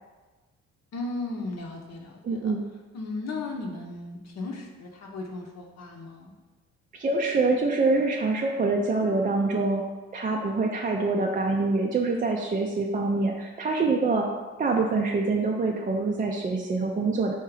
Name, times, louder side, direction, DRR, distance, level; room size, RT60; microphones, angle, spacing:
voice 1, 0.9-2.5 2.9-6.3, left 3 dB, 60° left, 0 dB, 0.8 m, -36 dB
voice 2, 2.2-2.6 6.9-9.8 10.1-14.3 14.6-17.3, right 3 dB, 30° right, 0 dB, 0.4 m, -25 dB
3.6 x 2.8 x 4.7 m, 1.3 s
cardioid pair, 90°, 30 cm